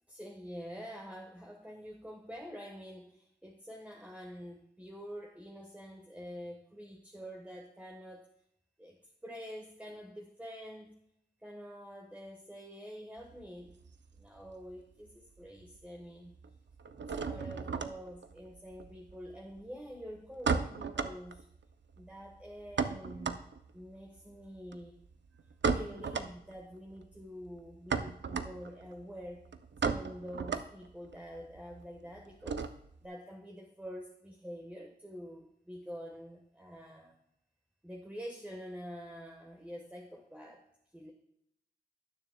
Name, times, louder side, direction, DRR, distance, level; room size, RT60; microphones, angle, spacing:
voice 1, 0.1-8.3 8.8-9.0 9.2-11.0 11.4-13.8 14.2-16.3 17.1-21.4 22.0-23.4 23.7-25.0 25.6-29.5 29.8-32.7 33.0-37.2 37.8-40.6 40.9-41.1, equal, 10° right, 1 dB, 1.2 m, -47 dB
sound 1, 13.2-14.8 15.1-15.8 16.0-33.1, right 5 dB, 85° right, 0.5 m, -37 dB
18.5 x 6.8 x 2.2 m, 0.76 s
wide cardioid pair, 65°, 18 cm